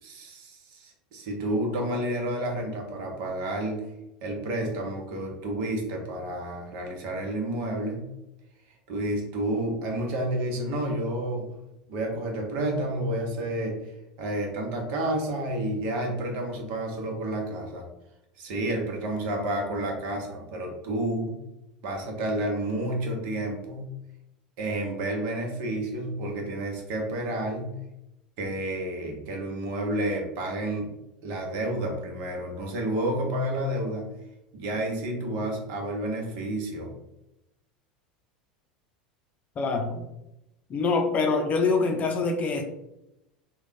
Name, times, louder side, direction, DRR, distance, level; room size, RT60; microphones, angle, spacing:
voice 1, 0.0-3.8 4.2-8.0 8.9-11.5 11.9-17.9 18.4-21.3 21.8-23.9 24.6-27.7 28.4-30.9 31.2-34.0 34.5-36.9, right 1 dB, 55° right, 1 dB, 1.1 m, -30 dB
voice 2, 39.6-40.0 40.7-42.6, left 4 dB, 35° left, 5 dB, 0.6 m, -25 dB
3.6 x 2.3 x 3.6 m, 0.88 s
figure-of-eight pair, 80°, 4 cm